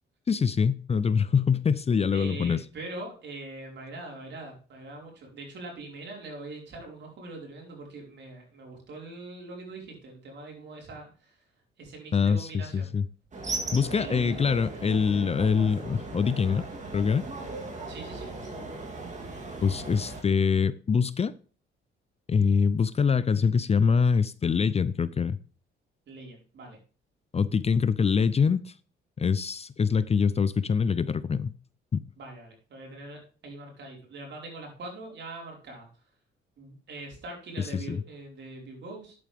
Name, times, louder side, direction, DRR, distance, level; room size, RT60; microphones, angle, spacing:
voice 1, 0.3-2.6 12.1-12.5 12.7-13.0 13.5-16.6 16.9-17.2 19.6-21.3 22.3-25.4 27.3-28.7 29.2-31.5 31.9-32.0 37.9-38.0, left 6 dB, 30° left, 0.6 m, -24 dB
voice 2, 2.1-11.4 11.8-12.9 13.9-14.4 17.9-18.3 26.1-26.8 32.2-35.9 36.6-39.1, right 2 dB, 60° right, 5.1 m, -42 dB
sound 1, 13.3-20.2, right 3 dB, 35° right, 3.3 m, -38 dB
11.0 x 8.7 x 3.6 m
cardioid pair, 90°, 20 cm